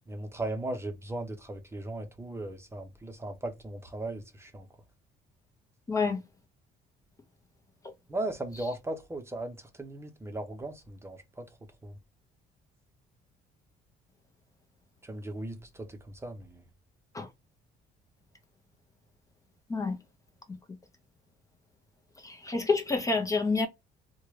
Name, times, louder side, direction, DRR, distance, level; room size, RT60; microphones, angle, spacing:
voice 1, 0.1-4.7 8.1-11.5 11.8-11.9 15.0-16.6, right 2 dB, 15° right, 0.7 m, -37 dB
voice 2, 5.9-6.2 17.1-17.3 19.7-20.0 22.2-23.7, left 4 dB, 20° left, 0.6 m, -28 dB
3.6 x 2.2 x 3.1 m
cardioid pair, 110°, 17 cm